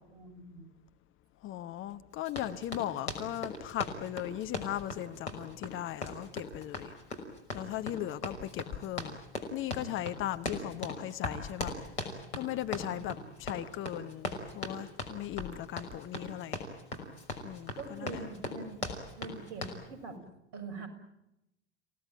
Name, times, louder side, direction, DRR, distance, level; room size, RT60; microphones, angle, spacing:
voice 1, 0.1-0.7 12.8-13.1 17.7-18.8 19.1-20.2 20.5-20.9, right 4 dB, 50° right, 7 dB, 6.8 m, -44 dB
voice 2, 1.4-6.9 7.5-9.2 9.5-11.7 12.3-16.6 17.4-18.2, left 13 dB, 35° left, 11 dB, 1.1 m, -38 dB
Run, 2.2-19.8, left 2 dB, 75° left, 5.9 m, -39 dB
29.0 x 18.0 x 9.2 m, 0.87 s
figure-of-eight pair, 80°, 34 cm